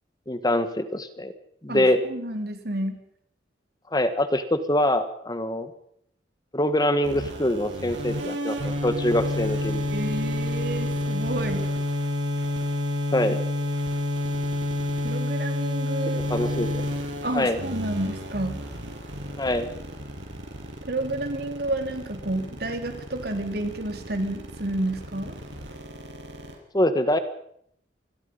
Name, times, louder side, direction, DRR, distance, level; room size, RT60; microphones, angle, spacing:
voice 1, 0.3-1.3 1.6-2.0 3.9-5.7 6.5-9.8 13.1-13.4 16.3-16.8 17.3-17.6 19.4-19.7 26.7-27.2, left 1 dB, 20° left, 10 dB, 1.6 m, -24 dB
voice 2, 1.7-3.0 9.9-11.7 15.0-16.5 17.2-18.6 20.9-25.4, right 1 dB, 60° right, 5 dB, 3.7 m, -30 dB
sound 1, 7.0-26.5, left 1 dB, 85° right, 6.8 m, -30 dB
27.5 x 20.5 x 5.5 m, 0.69 s
head